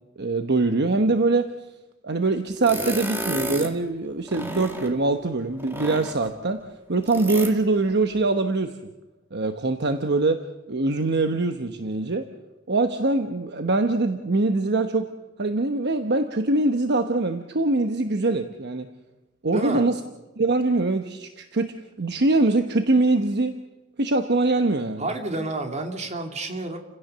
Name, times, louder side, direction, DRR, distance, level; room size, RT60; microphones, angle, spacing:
voice 1, 0.2-1.5 2.0-6.6 6.9-8.8 9.3-10.4 10.7-12.3 12.7-15.1 15.4-18.9 19.4-20.0 20.4-23.6 24.0-25.1, right 2 dB, 55° right, 7 dB, 1.0 m, -23 dB
sound 1, 2.6-3.8 4.2-5.0 5.6-6.4 7.0-7.6, right 1 dB, 10° right, 2.0 m, -32 dB
voice 2, 19.5-19.9 25.0-26.8, right 2 dB, 35° right, 3 dB, 2.7 m, -29 dB
30.0 x 16.5 x 6.8 m, 1.1 s
head